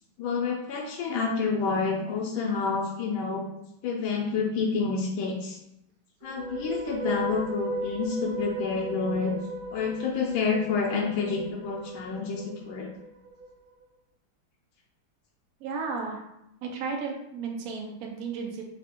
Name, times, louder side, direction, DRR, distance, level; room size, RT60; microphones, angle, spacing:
voice 1, 0.2-3.5 3.8-5.6 6.2-9.3 9.7-12.9, left 5 dB, 75° left, -1 dB, 1.3 m, -28 dB
sound 1, 6.2-13.5, right 2 dB, 90° right, 1.5 m, -37 dB
voice 2, 15.6-16.2 16.6-18.6, right 4 dB, 70° right, 0 dB, 0.8 m, -34 dB
3.5 x 2.8 x 4.2 m, 0.82 s
omnidirectional pair, 2.3 m